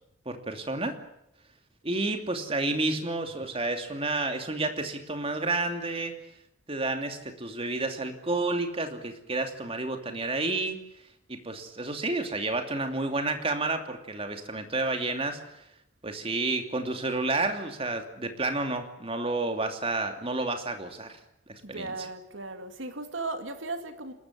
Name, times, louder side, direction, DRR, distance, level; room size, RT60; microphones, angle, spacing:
voice 1, 0.3-1.0 1.8-6.2 6.7-10.8 11.3-15.4 16.0-21.2 21.7-21.9, right 2 dB, 30° right, 2.8 m, -30 dB
voice 2, 21.6-24.1, right 3 dB, 75° right, 2.4 m, -36 dB
29.0 x 13.5 x 9.8 m
head